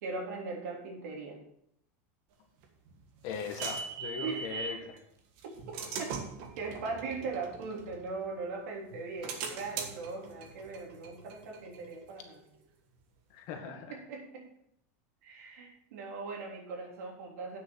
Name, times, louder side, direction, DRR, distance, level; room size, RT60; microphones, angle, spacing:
voice 1, 0.0-1.4 4.2-4.8 5.4-5.5 6.0-6.1 6.6-12.4 13.9-14.5 15.2-17.6, right 4 dB, 75° right, 0 dB, 3.4 m, -39 dB
sound 1, 2.6-4.8 5.4-8.5 8.9-12.3, right 5 dB, 45° right, 1.5 m, -41 dB
voice 2, 3.2-4.9 13.3-14.0, left 6 dB, 40° left, 4 dB, 1.7 m, -39 dB
9.2 x 6.5 x 6.5 m, 0.73 s
supercardioid pair, 170°, 9 cm